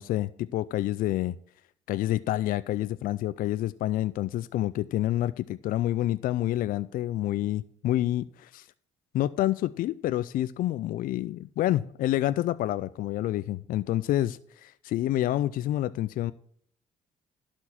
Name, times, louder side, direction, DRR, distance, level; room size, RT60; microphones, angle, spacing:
voice 1, 0.0-1.4 1.9-8.7 9.1-16.3, left 14 dB, 65° left, 15 dB, 0.4 m, -28 dB
11.5 x 4.5 x 7.3 m, 0.64 s
hypercardioid pair, 55°, 16 cm